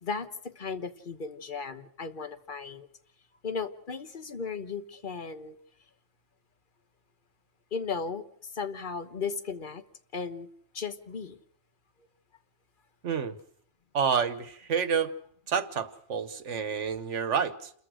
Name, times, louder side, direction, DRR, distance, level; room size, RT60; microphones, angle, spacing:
voice 1, 0.0-2.9 3.4-5.6 7.7-8.2 8.5-9.8 10.1-10.5 10.7-11.4, left 5 dB, 45° left, 10 dB, 1.2 m, -35 dB
voice 2, 13.0-13.4 13.9-15.1 15.5-17.7, right 6 dB, 75° right, 13 dB, 1.4 m, -29 dB
28.5 x 14.0 x 6.4 m, 0.66 s
omnidirectional pair, 1.2 m